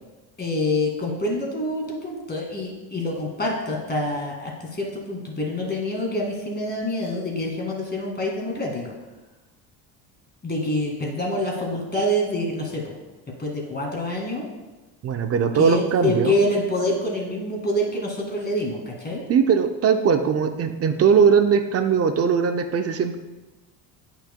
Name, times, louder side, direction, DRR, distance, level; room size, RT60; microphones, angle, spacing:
voice 1, 0.4-8.9 10.4-12.9 13.4-14.5 15.6-19.2, left 1 dB, 20° left, 0 dB, 1.9 m, -26 dB
voice 2, 15.0-16.3 19.3-23.2, right 6 dB, 35° right, 7 dB, 0.5 m, -20 dB
8.8 x 5.8 x 2.2 m, 1.1 s
supercardioid pair, 95°, 44 cm